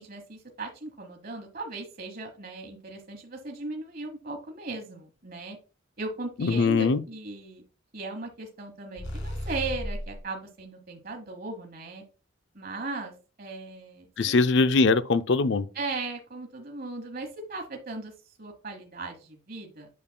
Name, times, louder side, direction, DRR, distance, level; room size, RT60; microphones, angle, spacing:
voice 1, 0.0-5.6 6.0-7.6 7.9-12.0 12.5-13.1 13.4-14.1 15.7-18.1 18.4-19.9, right 3 dB, 45° right, 1.2 m, -37 dB
voice 2, 6.4-7.0 14.2-15.7, left 4 dB, 60° left, 0.5 m, -22 dB
sound 1, 9.0-10.2, equal, 85° left, 2.3 m, -34 dB
8.5 x 6.8 x 2.2 m
head